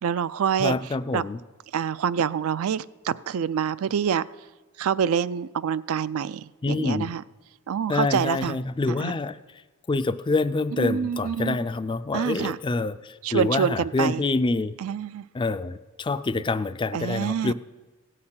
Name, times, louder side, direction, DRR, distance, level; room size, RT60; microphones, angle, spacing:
voice 1, 0.0-0.8 1.1-1.2 1.7-4.2 4.8-7.2 7.7-8.6 8.9-9.1 10.7-11.6 12.1-12.6 13.2-14.2 14.8-15.3 16.9-17.5, right 7 dB, 65° right, 0.4 m, -26 dB
voice 2, 0.6-1.4 6.6-7.1 7.9-9.4 9.9-14.7 15.3-17.5, left 3 dB, 20° left, 0.3 m, -26 dB
16.5 x 6.6 x 5.7 m
head